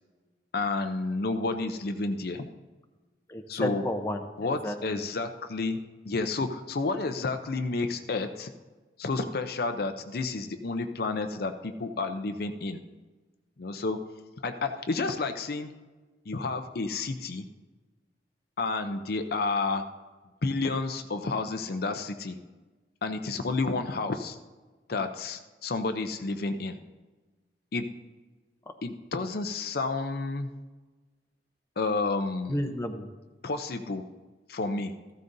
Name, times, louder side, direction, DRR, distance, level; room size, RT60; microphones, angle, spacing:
voice 1, 0.5-2.5 3.5-3.9 4.4-5.8 6.0-8.5 9.0-12.8 13.6-14.0 14.4-15.7 16.3-17.5 18.6-19.8 20.4-22.4 23.0-24.4 24.9-26.8 27.7-27.9 28.8-30.5 31.8-32.6 33.4-34.0 34.5-34.9, left 3 dB, 60° left, 7 dB, 0.6 m, -30 dB
voice 2, 3.3-5.0 32.5-33.1, left 1 dB, 15° left, 5 dB, 0.7 m, -32 dB
14.5 x 13.0 x 2.7 m, 1.3 s
head